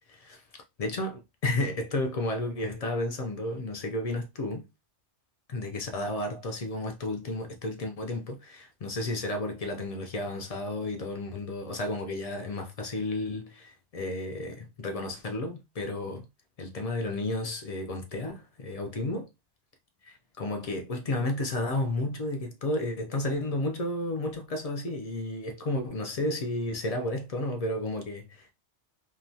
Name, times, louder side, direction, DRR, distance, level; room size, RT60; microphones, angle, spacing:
voice 1, 0.1-0.4 0.8-4.7 5.5-16.3 16.6-19.3 20.0-28.5, left 2 dB, 55° left, 0.4 m, -32 dB
2.8 x 2.2 x 2.6 m
omnidirectional pair, 1.2 m